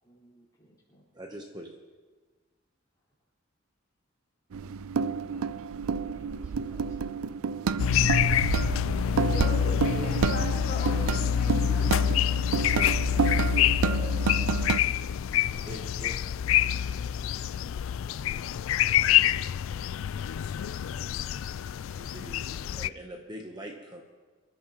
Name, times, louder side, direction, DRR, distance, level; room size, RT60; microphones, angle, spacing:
voice 1, 0.0-1.2 5.2-5.6 6.1-7.0 8.7-9.3, left 1 dB, 15° left, -7 dB, 4.4 m, -56 dB
voice 2, 1.1-1.8 13.8-14.4 15.6-16.2 21.9-24.0, right 1 dB, 20° right, 2 dB, 0.9 m, -43 dB
sound 1, 4.5-14.8, right 5 dB, 85° right, 0.4 m, -30 dB
sound 2, 7.8-22.9, left 9 dB, 70° left, 0.3 m, -26 dB
voice 3, 9.3-12.0, left 2 dB, 45° left, -3 dB, 2.6 m, -39 dB
25.5 x 12.5 x 3.0 m, 1.4 s
head